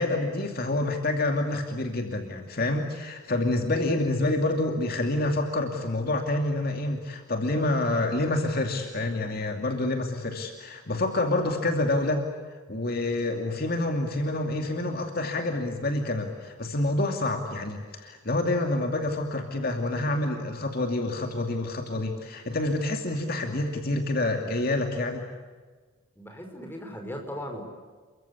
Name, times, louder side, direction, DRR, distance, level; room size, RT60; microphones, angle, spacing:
voice 1, 0.0-12.3 12.7-25.3, left 2 dB, 45° left, 3 dB, 2.6 m, -27 dB
voice 2, 26.2-27.7, equal, 10° left, 3 dB, 5.4 m, -37 dB
29.5 x 24.0 x 8.5 m, 1.4 s
head